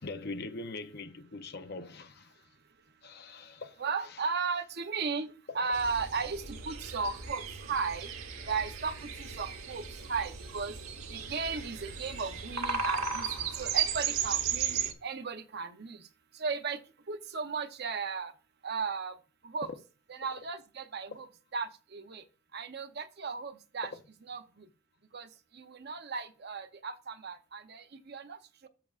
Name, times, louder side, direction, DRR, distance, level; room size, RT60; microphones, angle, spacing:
voice 1, 0.0-2.3 3.0-3.8 4.1-4.2 5.6-5.7, left 3 dB, 50° left, 0.7 m, -42 dB
voice 2, 3.8-8.1 8.5-10.7 11.1-16.0 16.4-16.8 17.1-18.3 18.6-19.1 19.4-19.7 20.1-21.3 21.5-22.2 22.5-23.9 24.3-24.7 25.1-25.3 25.5-28.7, right 5 dB, 50° right, 0.7 m, -36 dB
sound 1, 5.7-14.9, right 6 dB, 80° right, 1.1 m, -35 dB
13.5 x 6.0 x 2.4 m
head